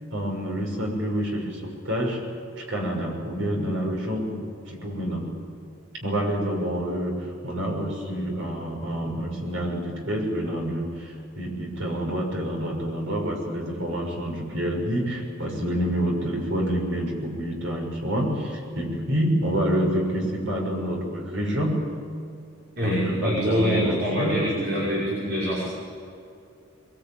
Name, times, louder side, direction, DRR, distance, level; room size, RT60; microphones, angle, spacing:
voice 1, 0.1-2.2 2.6-5.3 6.0-21.9 22.8-24.4, equal, 75° right, 0 dB, 6.4 m, -28 dB
voice 2, 22.8-25.7, equal, 55° right, -6 dB, 5.9 m, -25 dB
22.5 x 22.5 x 9.0 m, 2.4 s
head